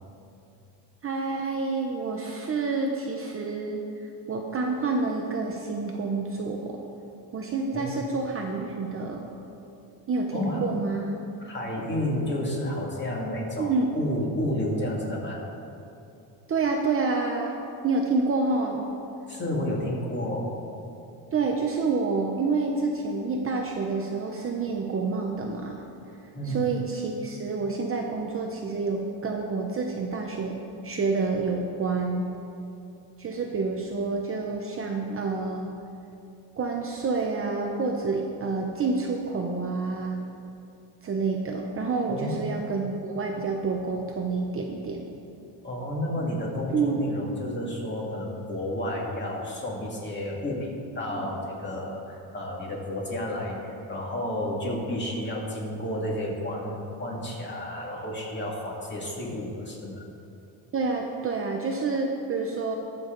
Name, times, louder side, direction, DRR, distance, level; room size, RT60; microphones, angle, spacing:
voice 1, 1.0-6.8 7.3-9.3 10.1-11.2 13.6-13.9 16.5-17.6 17.8-18.9 21.3-25.8 26.5-30.6 30.8-32.3 33.2-35.7 36.6-40.2 41.0-45.0 46.7-47.0 51.9-52.0 60.7-62.8, right 4 dB, 30° right, 1 dB, 0.8 m, -28 dB
voice 2, 10.3-10.6 11.4-15.4 19.3-20.5 26.3-26.6 42.1-42.5 45.6-60.0, left 1 dB, 25° left, -3 dB, 2.4 m, -31 dB
20.5 x 7.1 x 3.9 m, 2.7 s
cardioid pair, 150°, 46 cm